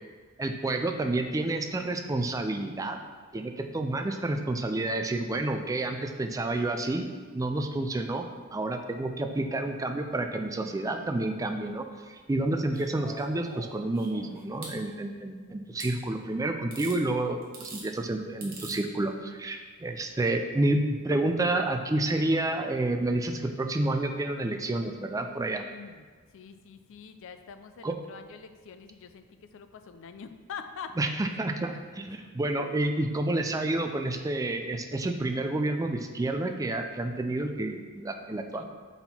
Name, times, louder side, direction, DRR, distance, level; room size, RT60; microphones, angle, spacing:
voice 1, 0.4-3.0 3.3-25.6 27.8-27.9 31.0-38.6, right 2 dB, 15° right, 5 dB, 0.3 m, -29 dB
sound 1, 12.7-14.8 15.8-15.9 16.7-17.0 17.4-17.9 18.4-18.8 20.0-20.1, right 3 dB, 40° right, 1.1 m, -44 dB
voice 2, 25.7-26.0 26.3-29.2 29.5-31.0 32.5-33.0 38.5-38.6, left 6 dB, 60° left, 9 dB, 0.4 m, -45 dB
5.8 x 4.0 x 4.3 m, 1.5 s
head